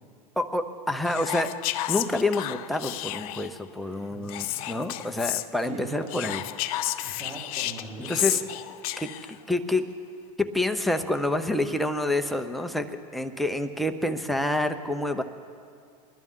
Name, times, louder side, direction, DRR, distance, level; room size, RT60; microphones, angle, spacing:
voice 1, 0.4-1.5 1.9-6.4 7.0-7.1 8.1-8.4 9.0-9.1 9.5-9.9 10.4-15.2, left 2 dB, ahead, 6 dB, 0.7 m, -28 dB
Whispering, 1.1-3.6 4.3-5.5 6.1-9.4, left 15 dB, 70° left, 0.6 m, -31 dB
voice 2, 3.8-4.6 5.6-6.3 7.0-8.3, right 3 dB, 30° right, -5 dB, 3.8 m, -41 dB
22.0 x 12.0 x 3.7 m, 2.3 s
supercardioid pair, 115°, 20 cm